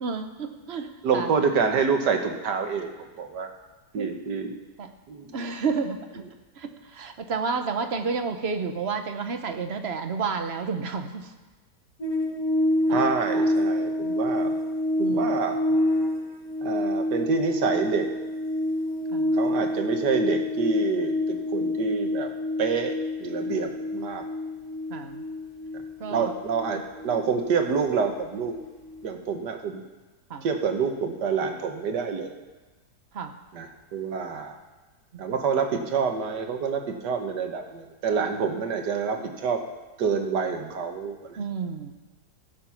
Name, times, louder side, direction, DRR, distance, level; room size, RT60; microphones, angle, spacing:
voice 1, 0.0-0.9 1.1-1.3 4.0-4.1 4.8-4.9 5.3-6.2 6.6-11.3 12.9-13.1 15.0-15.3 19.1-19.4 24.9-25.2 26.0-26.3 30.3-30.5 33.1-33.3 35.1-35.2 41.4-41.9, right 5 dB, 45° right, 7 dB, 0.9 m, -30 dB
voice 2, 1.0-2.9 3.2-3.5 3.9-4.5 5.1-5.5 12.9-14.5 15.0-15.6 16.6-18.1 19.3-22.3 22.6-24.2 26.1-28.6 29.0-29.8 30.4-32.3 33.5-34.6 35.2-39.6 40.0-41.4, right 5 dB, 80° right, 5 dB, 1.7 m, -27 dB
sound 1, 12.0-28.6 28.8-29.0, left 1 dB, 60° left, 2.8 m, -27 dB
15.5 x 7.4 x 5.7 m, 1.2 s
omnidirectional pair, 1.8 m